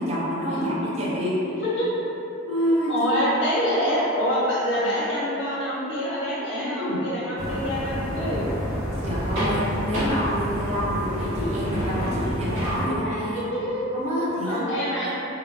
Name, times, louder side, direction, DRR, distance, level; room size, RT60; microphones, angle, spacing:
voice 1, 0.0-1.4 2.5-2.9 6.5-7.0 9.0-13.4 13.9-14.6 15.0-15.1, equal, 35° right, -8 dB, 0.5 m, -27 dB
voice 2, 1.5-1.9 2.9-8.5 13.3-13.8 14.4-15.1, equal, 60° left, -7 dB, 0.7 m, -26 dB
sound 1, 7.4-12.9, equal, 70° right, 0.7 m, -28 dB
2.8 x 2.1 x 2.5 m, 3.0 s
head